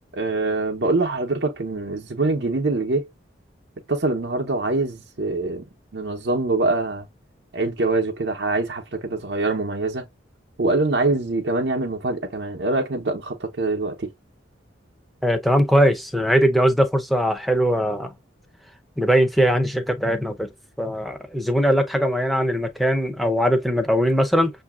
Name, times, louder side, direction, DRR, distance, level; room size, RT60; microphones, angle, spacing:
voice 1, 0.1-3.1 3.9-5.6 5.9-7.1 7.5-10.1 10.6-14.1, right 2 dB, 60° right, 0.7 m, -24 dB
voice 2, 15.2-18.1 19.0-20.5 20.8-24.5, equal, ahead, 0.6 m, -20 dB
6.6 x 2.6 x 2.3 m
head